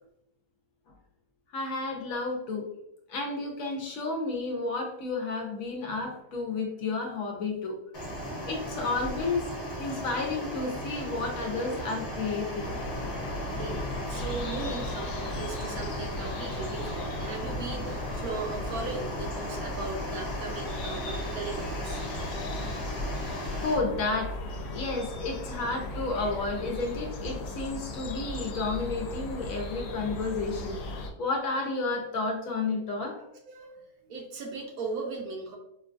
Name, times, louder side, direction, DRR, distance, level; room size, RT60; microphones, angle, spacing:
voice 1, 1.5-2.7 3.1-7.8 8.5-9.5 9.8-12.7 23.4-24.3 24.7-33.2, left 3 dB, 65° left, 1 dB, 1.0 m, -31 dB
sound 1, 7.9-23.7, equal, 45° left, 1.2 m, -36 dB
sound 2, 12.6-31.1, left 2 dB, 85° left, 1.2 m, -37 dB
voice 2, 13.5-22.1 33.1-33.8 34.1-35.6, right 3 dB, 70° right, 1 dB, 1.1 m, -38 dB
4.5 x 2.3 x 2.4 m, 0.78 s
omnidirectional pair, 1.6 m